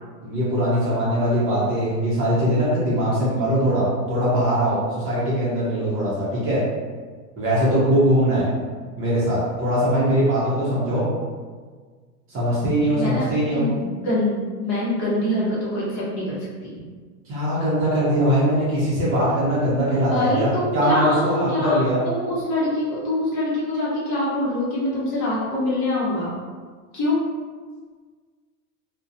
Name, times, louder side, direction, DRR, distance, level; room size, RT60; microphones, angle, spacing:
voice 1, 0.2-6.6 7.4-8.5 9.0-11.1 12.3-13.6 17.3-22.0, equal, 25° right, -8 dB, 0.7 m, -21 dB
voice 2, 12.9-16.3 16.6-16.8 20.1-26.3 26.9-27.2, left 1 dB, 35° left, -7 dB, 0.9 m, -24 dB
2.3 x 2.1 x 2.7 m, 1.5 s
supercardioid pair, 125°, 49 cm